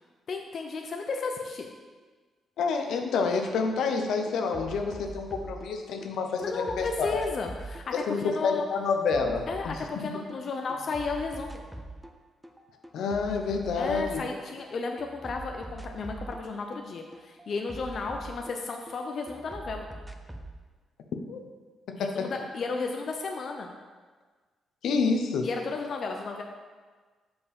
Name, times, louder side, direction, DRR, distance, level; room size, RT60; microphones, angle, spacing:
voice 1, 0.3-1.7 6.4-7.8 8.1-8.6 9.5-11.6 13.7-19.9 22.0-23.7 25.4-26.4, left 4 dB, 50° left, 3 dB, 0.6 m, -33 dB
voice 2, 2.6-7.2 7.9-9.5 12.9-14.2 21.3-21.4 22.0-22.3 24.8-25.5, left 4 dB, 80° left, 4 dB, 0.9 m, -28 dB
sound 1, 3.5-3.6 3.9-6.1 6.4-10.4 10.7-12.2 12.4-14.7 15.0-19.0 19.3-20.6, right 2 dB, 5° right, 0.6 m, -43 dB
7.1 x 5.3 x 5.4 m, 1.4 s
cardioid pair, 115°, 0 cm